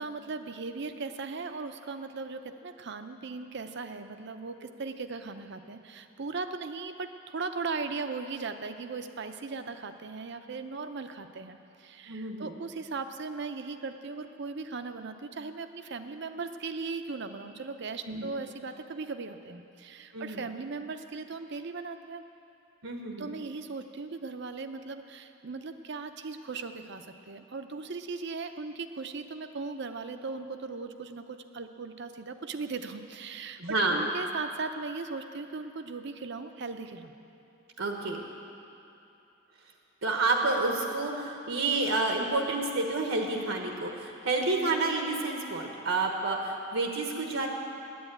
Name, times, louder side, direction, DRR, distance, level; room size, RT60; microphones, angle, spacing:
voice 1, 0.0-22.2 23.2-33.6 33.9-37.2, right 4 dB, 60° right, 8 dB, 0.6 m, -38 dB
voice 2, 12.1-12.5 18.1-18.3 20.1-20.4 22.8-23.3 33.6-34.1 37.8-38.2 40.0-47.5, right 3 dB, 80° right, 2 dB, 1.2 m, -29 dB
10.5 x 8.9 x 9.0 m, 2.8 s
head